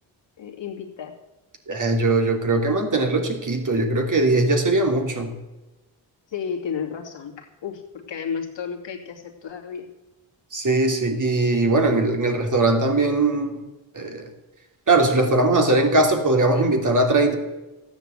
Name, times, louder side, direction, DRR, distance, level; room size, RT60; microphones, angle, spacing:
voice 1, 0.4-1.1 6.3-9.9, left 6 dB, 65° left, 3 dB, 2.8 m, -32 dB
voice 2, 1.7-5.4 10.5-13.6 13.9-14.2 14.9-17.4, right 2 dB, 40° right, 3 dB, 3.3 m, -20 dB
14.0 x 9.5 x 8.1 m, 1.1 s
supercardioid pair, 60°, 47 cm